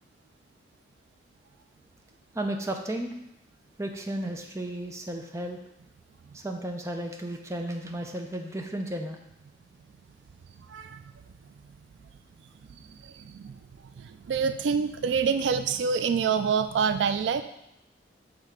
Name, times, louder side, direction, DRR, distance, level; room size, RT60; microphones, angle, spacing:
voice 1, 2.3-3.1 3.8-5.6 6.3-9.2, right 1 dB, 15° right, 3 dB, 0.6 m, -33 dB
voice 2, 10.7-11.0 12.7-13.6 14.0-17.4, right 6 dB, 75° right, 10 dB, 0.3 m, -27 dB
6.5 x 3.5 x 5.0 m, 0.84 s
head